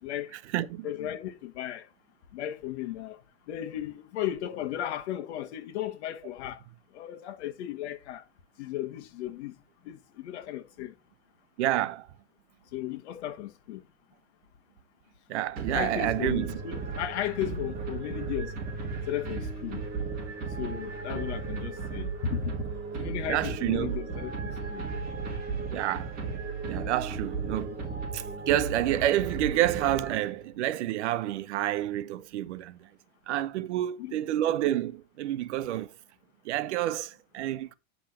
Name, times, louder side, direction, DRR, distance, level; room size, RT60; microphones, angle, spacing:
voice 1, 0.0-1.9 2.3-3.2 3.5-6.6 6.9-8.3 8.6-9.6 9.8-10.9 12.7-13.8 15.7-18.5 19.1-19.8 20.6-22.7 23.0-24.8 34.0-34.2, left 11 dB, 75° left, 1.6 m, -35 dB
voice 2, 0.5-0.9 11.6-12.1 15.3-16.5 23.3-23.9 25.7-26.1 26.7-27.8 28.1-32.8 33.3-35.9 36.4-37.7, right 13 dB, 80° right, 1.0 m, -29 dB
sound 1, 15.5-30.6, right 4 dB, 25° right, 3.2 m, -35 dB
8.9 x 5.6 x 4.3 m
supercardioid pair, 175°, 34 cm